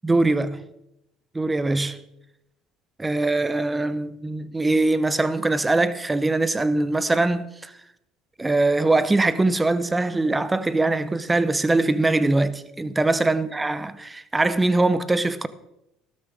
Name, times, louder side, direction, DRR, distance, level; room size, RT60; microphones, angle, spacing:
voice 1, 0.0-0.6 1.3-2.0 3.0-7.7 8.4-15.5, right 2 dB, 15° right, 0.8 m, -22 dB
13.0 x 12.5 x 3.5 m
supercardioid pair, 95°, 0 cm